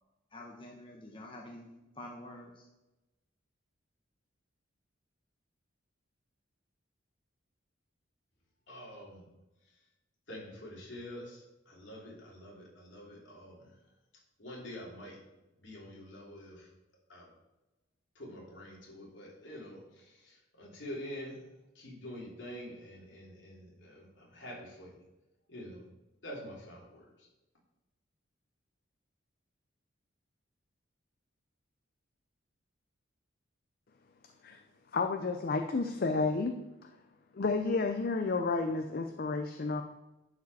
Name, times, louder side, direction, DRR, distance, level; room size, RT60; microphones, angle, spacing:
voice 1, 0.3-1.7 2.0-2.6, left 1 dB, 25° left, -1 dB, 0.9 m, -47 dB
voice 2, 8.7-9.3 10.3-13.8 14.4-15.2 15.6-16.7 17.1-17.3 18.1-21.4 21.7-25.0 25.5-25.8 26.2-27.3, equal, 65° left, -3 dB, 3.2 m, -46 dB
voice 3, 34.9-36.5 36.8-37.0 37.3-39.8, left 3 dB, 50° left, 6 dB, 0.5 m, -31 dB
11.0 x 4.9 x 4.8 m, 1.0 s
head